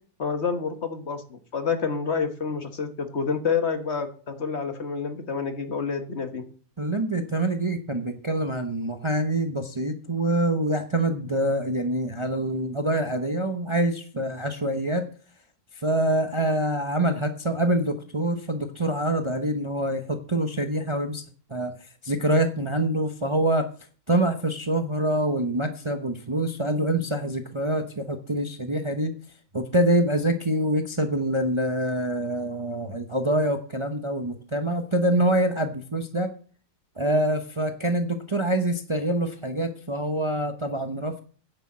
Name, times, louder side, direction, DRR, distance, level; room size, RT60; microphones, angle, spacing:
voice 1, 0.2-6.4, left 5 dB, 45° left, 7 dB, 1.5 m, -28 dB
voice 2, 6.8-15.0 15.7-21.2 21.5-21.7 22.0-23.7 24.1-29.1 29.5-36.3 37.0-41.2, right 1 dB, 25° right, 7 dB, 0.8 m, -25 dB
9.9 x 6.8 x 7.4 m, 0.41 s
omnidirectional pair, 1.6 m